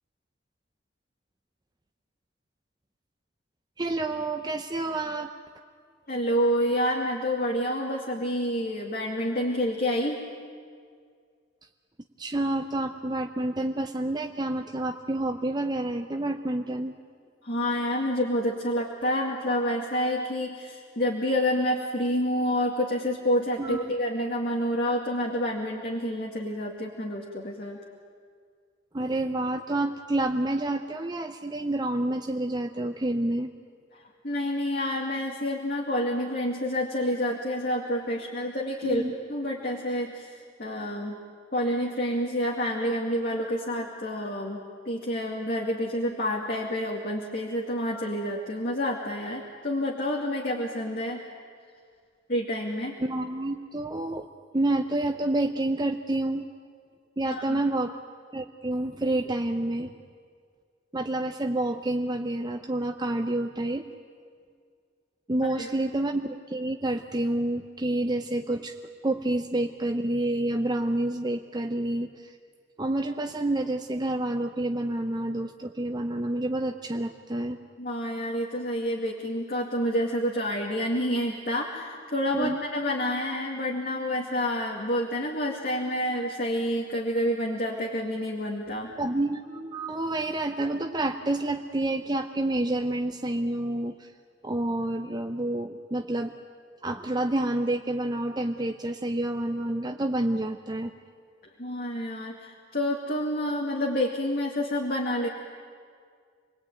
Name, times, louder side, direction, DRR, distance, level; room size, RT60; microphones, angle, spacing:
voice 1, 3.8-5.3 12.2-16.9 23.6-23.9 28.9-33.5 38.8-39.1 53.0-54.3 54.5-56.5 57.2-58.0 58.3-59.9 60.9-63.8 65.3-68.8 69.0-72.3 72.8-77.6 82.3-82.6 89.0-94.1 94.4-96.3 96.8-100.9, right 1 dB, 25° right, 5 dB, 0.8 m, -28 dB
voice 2, 6.1-10.2 17.4-27.8 34.2-39.0 39.3-40.3 40.6-41.2 41.5-44.6 44.9-51.2 52.3-52.9 57.3-57.6 65.5-65.7 77.8-88.9 101.6-105.3, equal, 50° left, -1 dB, 2.3 m, -28 dB
27.5 x 20.5 x 9.3 m, 2.1 s
head